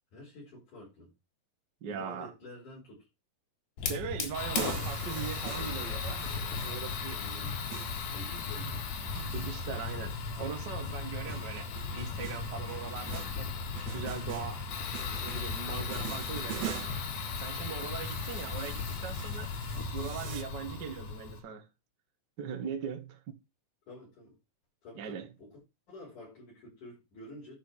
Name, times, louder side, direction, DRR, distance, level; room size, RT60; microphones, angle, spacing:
voice 1, 0.1-1.1 1.9-3.1 4.7-4.9 7.2-7.5 8.1-8.9 20.7-20.8 23.9-24.4 24.8-25.6 25.9-27.6, left 1 dB, 60° left, 6.9 m, -49 dB
voice 2, 1.8-2.3 3.9-6.3 6.6-7.2 9.3-13.6 13.9-14.7 15.2-16.8 17.4-19.5 19.9-21.7 22.4-23.2 25.0-25.3, right 7 dB, 60° right, 1.1 m, -40 dB
Fire, 3.8-21.4, left 5 dB, 80° left, 3.7 m, -36 dB
sound 1, 4.4-10.5 10.8-17.1 18.0-20.4, right 11 dB, 85° right, 2.9 m, -44 dB
11.5 x 5.3 x 6.1 m
omnidirectional pair, 4.1 m